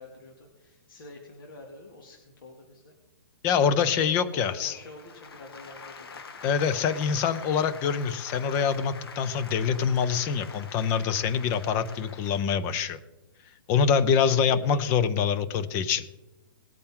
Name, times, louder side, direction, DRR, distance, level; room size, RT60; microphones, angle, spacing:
voice 1, 0.0-2.9 3.6-6.2 14.5-14.8, left 2 dB, 65° left, 1 dB, 2.3 m, -47 dB
voice 2, 3.4-4.7 6.4-13.0 13.7-16.1, left 7 dB, 20° left, 14 dB, 0.5 m, -25 dB
sound 1, 4.7-12.8, left 5 dB, 85° left, 1.5 m, -45 dB
19.5 x 8.8 x 3.7 m, 1.1 s
hypercardioid pair, 170°, 12 cm